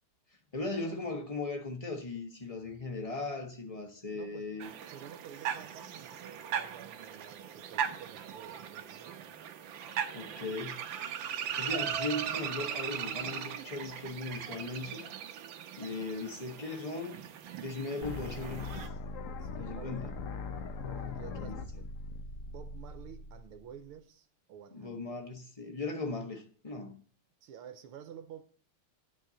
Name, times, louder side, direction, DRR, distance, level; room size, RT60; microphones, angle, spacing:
voice 1, 0.5-4.7 10.1-10.8 11.6-15.0 15.8-17.2 17.6-18.9 19.5-20.1 21.4-21.5 24.7-27.0, left 2 dB, 20° left, 0.9 m, -38 dB
voice 2, 4.1-4.5 4.9-9.3 19.4-20.0 20.8-21.9 22.5-25.0 27.4-28.4, right 9 dB, 85° right, 1.8 m, -50 dB
sound 1, 4.6-18.9, right 8 dB, 70° right, 1.5 m, -39 dB
sound 2, 18.0-24.0, left 4 dB, 60° left, 0.8 m, -41 dB
10.5 x 4.7 x 8.1 m
omnidirectional pair, 2.4 m